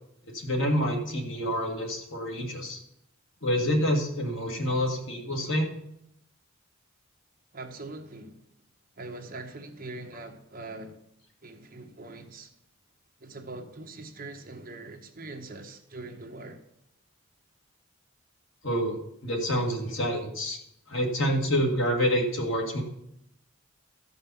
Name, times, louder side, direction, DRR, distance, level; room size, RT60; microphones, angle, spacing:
voice 1, 0.3-2.8 3.4-5.7 18.6-20.6 20.9-22.8, equal, 60° left, 2.1 m, -27 dB
voice 2, 7.5-8.4 9.0-11.0 11.4-12.5 13.2-16.6, right 2 dB, 40° right, 1.2 m, -42 dB
13.5 x 5.5 x 7.0 m
head